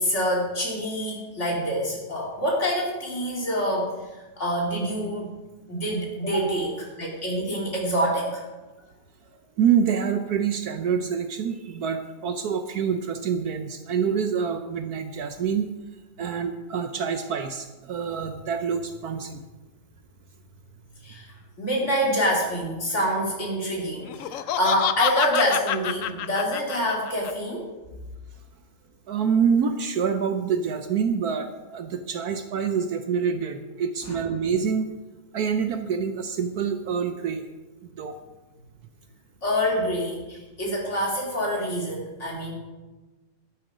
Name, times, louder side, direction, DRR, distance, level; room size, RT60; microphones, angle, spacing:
voice 1, 0.0-5.3 5.7-8.4 21.0-27.7 34.0-34.2 39.4-42.5, equal, 40° left, -2 dB, 3.2 m, -26 dB
voice 2, 9.6-15.7 16.2-19.4 29.1-34.9 35.3-37.4 38.0-38.2, right 7 dB, 65° right, 8 dB, 1.1 m, -26 dB
Laughter, 24.1-27.3, left 11 dB, 70° left, 0.7 m, -28 dB
11.5 x 10.0 x 5.0 m, 1.2 s
omnidirectional pair, 1.9 m